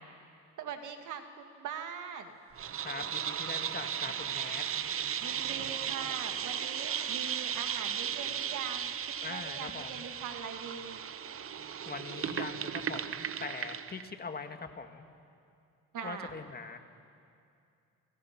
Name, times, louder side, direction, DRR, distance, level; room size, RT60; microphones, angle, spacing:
voice 1, 0.6-2.4 5.2-11.0 15.9-16.3, right 7 dB, 80° right, 6 dB, 2.0 m, -42 dB
sound 1, 2.6-14.1, right 8 dB, 45° right, 0.8 m, -36 dB
voice 2, 2.8-4.6 9.2-10.0 11.9-15.1 16.0-16.8, left 4 dB, 30° left, 6 dB, 1.8 m, -42 dB
30.0 x 22.0 x 6.0 m, 2.5 s
cardioid pair, 90°, 30 cm